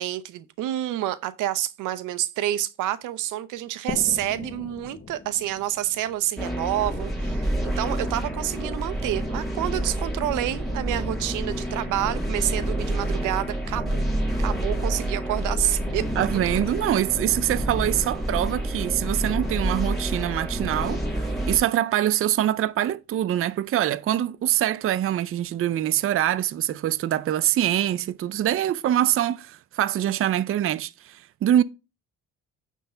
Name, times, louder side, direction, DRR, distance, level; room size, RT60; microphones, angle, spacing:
voice 1, 0.0-14.0 14.4-16.0, right 13 dB, 90° right, 0.7 m, -28 dB
sound 1, 3.9-7.4, left 6 dB, 40° left, 0.9 m, -39 dB
sound 2, 6.4-21.6, right 1 dB, ahead, 4.9 m, -28 dB
voice 2, 16.2-21.0 21.5-31.6, right 12 dB, 45° right, 0.5 m, -24 dB
9.3 x 3.7 x 5.5 m
cardioid pair, 90°, 30 cm